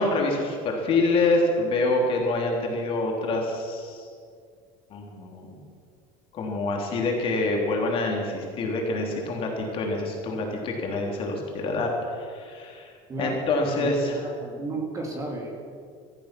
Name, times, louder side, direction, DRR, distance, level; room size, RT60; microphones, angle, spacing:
voice 1, 0.0-4.1 4.9-5.5 6.3-12.9 13.2-14.2, left 2 dB, 40° left, 0 dB, 3.3 m, -26 dB
voice 2, 13.8-15.6, right 2 dB, 20° right, 1 dB, 2.5 m, -33 dB
17.5 x 13.5 x 6.0 m, 2.2 s
cardioid pair, 155°, 14 cm